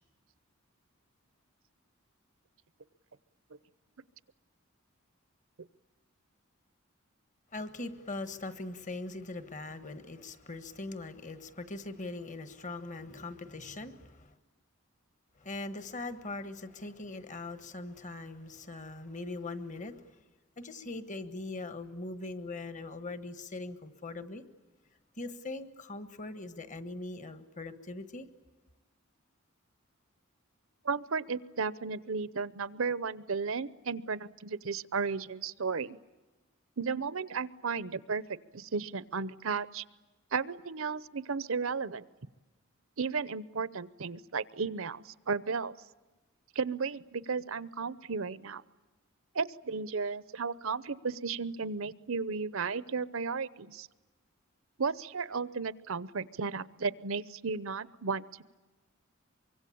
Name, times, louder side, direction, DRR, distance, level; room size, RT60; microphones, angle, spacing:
voice 1, 7.5-14.3 15.4-20.2 20.6-24.4 25.2-28.3, left 2 dB, 35° left, 11 dB, 1.5 m, -41 dB
voice 2, 30.8-36.0 36.8-39.8 40.3-42.0 43.0-45.8 46.5-48.6 49.3-53.9 54.8-58.4, right 5 dB, 70° right, 18 dB, 0.8 m, -34 dB
24.5 x 23.5 x 8.7 m, 1.2 s
head